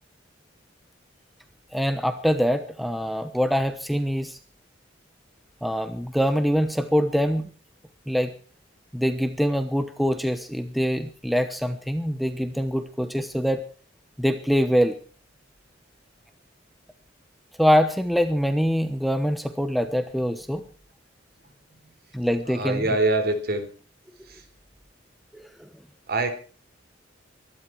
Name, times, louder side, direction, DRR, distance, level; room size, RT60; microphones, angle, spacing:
voice 1, 1.7-4.4 5.6-7.5 8.1-8.3 8.9-13.6 14.2-15.0 17.6-20.6 22.1-22.8 25.3-25.7, equal, ahead, 10 dB, 1.0 m, -24 dB
voice 2, 22.4-23.7 24.2-24.4 26.1-26.3, right 2 dB, 55° right, 8 dB, 3.7 m, -25 dB
24.0 x 12.0 x 4.7 m, 0.39 s
head